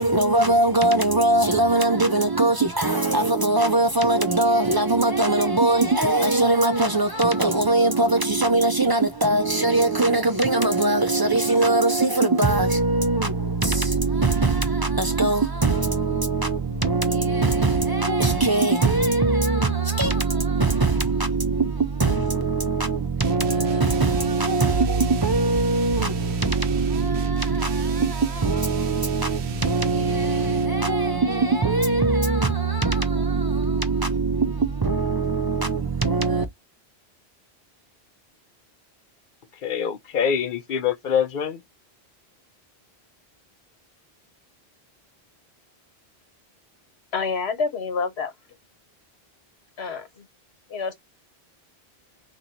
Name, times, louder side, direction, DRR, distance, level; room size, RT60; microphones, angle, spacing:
voice 1, 0.0-36.5, right 3 dB, 35° right, 0.4 m, -21 dB
sound 1, 23.2-30.8, right 8 dB, 90° right, 0.9 m, -38 dB
voice 2, 39.6-41.6, left 7 dB, 60° left, 0.7 m, -24 dB
voice 3, 47.1-48.3 49.8-50.3 50.7-50.9, left 4 dB, 85° left, 1.2 m, -27 dB
3.0 x 3.0 x 3.9 m
omnidirectional pair, 1.1 m